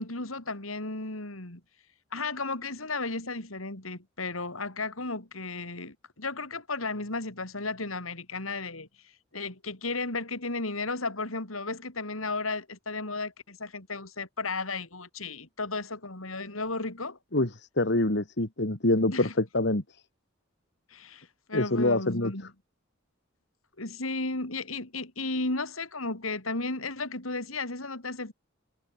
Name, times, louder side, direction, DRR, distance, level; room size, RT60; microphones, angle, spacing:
voice 1, 0.0-1.6 2.1-8.9 9.3-17.2 19.1-19.3 20.9-22.5 23.8-28.3, left 3 dB, 85° left, 5.0 m, -34 dB
voice 2, 17.8-19.8 21.5-22.3, left 2 dB, 55° left, 2.6 m, -25 dB
head